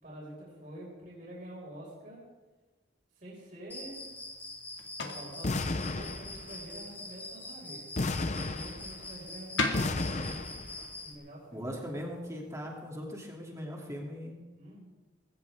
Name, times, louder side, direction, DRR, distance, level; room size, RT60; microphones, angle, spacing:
voice 1, 0.0-2.2 3.2-4.1 5.1-7.9 8.2-10.4 11.0-11.7 14.5-14.8, right 1 dB, 45° right, -5 dB, 5.3 m, -47 dB
Cricket, 3.7-11.1, left 2 dB, 10° left, 1.6 m, -44 dB
sound 1, 3.8-13.0, left 3 dB, 85° left, 2.1 m, -42 dB
Miners Explosion, 5.4-6.7 8.0-9.2 9.7-10.9, left 2 dB, 40° left, 0.7 m, -33 dB
voice 2, 11.5-14.4, equal, 15° right, -1 dB, 2.8 m, -39 dB
20.0 x 16.5 x 3.6 m, 1.2 s
head